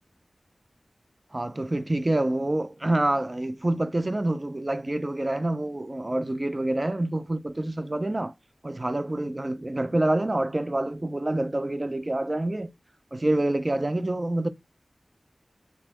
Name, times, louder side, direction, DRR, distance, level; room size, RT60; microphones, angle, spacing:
voice 1, 1.3-8.3 8.6-12.7 13.1-14.5, right 1 dB, 35° right, 0.4 m, -27 dB
2.9 x 2.2 x 3.4 m
wide cardioid pair, 45°, 0 cm